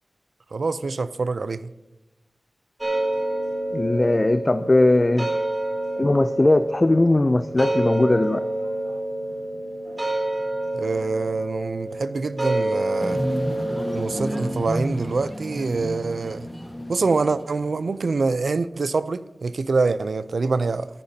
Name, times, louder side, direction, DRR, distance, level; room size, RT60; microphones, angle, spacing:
voice 1, 0.5-1.7 10.7-13.2 13.9-16.5 16.9-20.9, right 4 dB, 80° right, 0.5 m, -25 dB
sound 1, 2.8-14.5, right 1 dB, 30° right, 4.4 m, -28 dB
voice 2, 3.7-5.3 6.0-8.4, left 2 dB, 30° left, 0.4 m, -19 dB
sound 2, 13.0-17.8 18.1-18.2, equal, 10° left, 1.5 m, -31 dB
14.5 x 14.5 x 2.8 m
wide cardioid pair, 90°, 0 cm